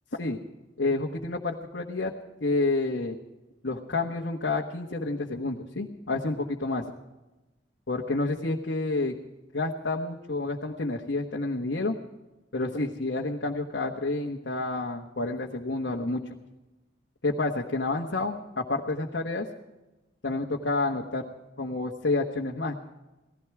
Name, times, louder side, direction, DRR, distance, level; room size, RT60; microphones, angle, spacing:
voice 1, 0.8-2.1 2.4-3.2 3.6-6.8 7.9-9.1 9.5-11.9 12.5-16.2 17.2-19.5 20.2-21.2 21.6-22.8, left 2 dB, 90° left, -1 dB, 1.3 m, -29 dB
18.0 x 15.5 x 4.8 m, 1.0 s
head